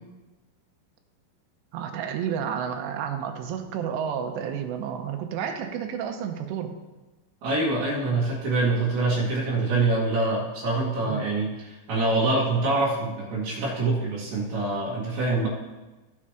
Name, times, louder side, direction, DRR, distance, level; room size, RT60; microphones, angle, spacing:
voice 1, 1.7-6.7 11.0-11.2, right 8 dB, 75° right, 5 dB, 3.0 m, -31 dB
voice 2, 7.4-15.5, right 2 dB, 50° right, -7 dB, 3.0 m, -25 dB
16.0 x 5.6 x 4.9 m, 1.2 s
omnidirectional pair, 5.3 m